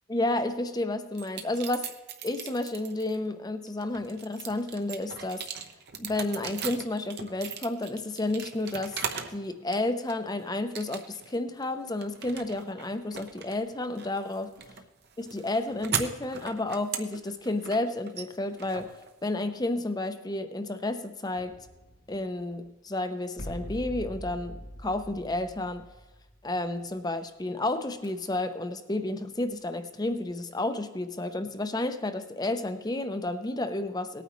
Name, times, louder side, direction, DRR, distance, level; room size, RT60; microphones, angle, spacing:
voice 1, 0.1-1.9 2.2-5.4 6.0-9.0 9.3-14.5 15.2-18.9 19.2-21.6 22.1-25.8 26.4-34.2, left 2 dB, 20° left, 9 dB, 0.7 m, -31 dB
sound 1, 1.1-3.2 3.7-9.4 9.7-10.3 10.7-11.3 11.6-19.6, right 7 dB, 55° right, 0.9 m, -38 dB
sound 2, 21.3-22.6 23.4-26.7 27.8-28.1, equal, 75° left, 2.7 m, -43 dB
18.5 x 9.1 x 3.1 m, 1.1 s
head